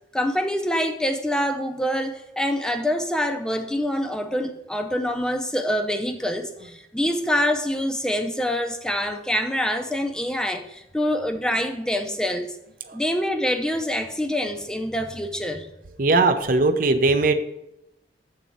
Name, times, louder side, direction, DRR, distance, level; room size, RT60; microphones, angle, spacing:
voice 1, 0.1-12.6 12.9-15.7, equal, 5° left, 6 dB, 0.5 m, -25 dB
voice 2, 16.0-17.3, right 3 dB, 50° right, 8 dB, 0.6 m, -19 dB
7.7 x 4.0 x 6.1 m, 0.85 s
head